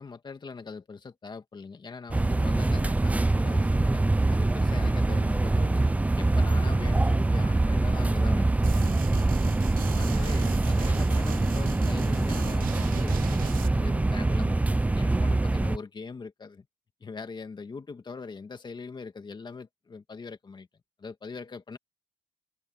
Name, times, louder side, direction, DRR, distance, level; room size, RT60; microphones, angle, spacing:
voice 1, 0.0-4.0 4.3-9.2 10.0-16.7 17.0-20.7 21.0-21.8, left 4 dB, 25° left, 2.2 m, -41 dB
sound 1, 2.1-15.8, right 2 dB, 10° right, 0.5 m, -24 dB
sound 2, 8.6-13.7, right 9 dB, 55° right, 2.3 m, -40 dB
cardioid pair, 110°, 17 cm